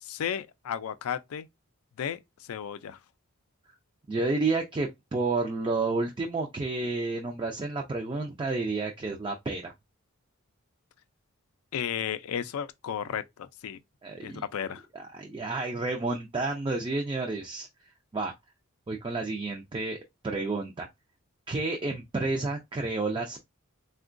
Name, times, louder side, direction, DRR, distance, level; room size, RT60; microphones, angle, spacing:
voice 1, 0.0-1.5 2.0-2.2 2.5-3.0 11.7-13.8 14.2-14.8, left 8 dB, 75° left, 0.4 m, -33 dB
voice 2, 4.1-9.7 14.0-14.4 14.9-18.3 18.9-20.9 21.5-23.4, right 3 dB, 20° right, 0.3 m, -30 dB
3.6 x 2.2 x 2.4 m
head